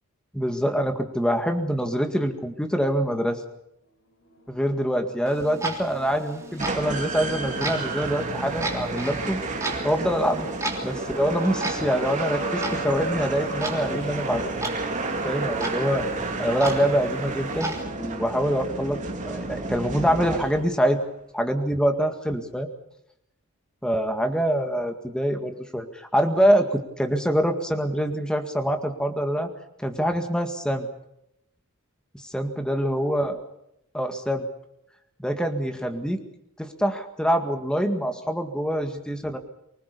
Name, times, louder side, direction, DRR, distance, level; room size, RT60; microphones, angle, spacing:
voice 1, 0.3-3.4 4.5-9.4 9.8-10.5 10.8-14.5 15.2-16.1 16.4-19.0 19.3-21.0 21.3-22.7 23.8-29.5 29.8-30.9 32.3-33.4 33.9-34.4 35.2-36.2 36.6-39.4, equal, 5° left, 5 dB, 2.0 m, -25 dB
sound 1, 4.2-14.5, left 1 dB, 65° left, 5.5 m, -42 dB
Clock, 5.3-17.8, right 2 dB, 15° right, 3.4 m, -36 dB
sound 2, 6.6-20.8, right 2 dB, 35° right, 2.9 m, -31 dB
25.0 x 20.0 x 6.9 m, 0.79 s
head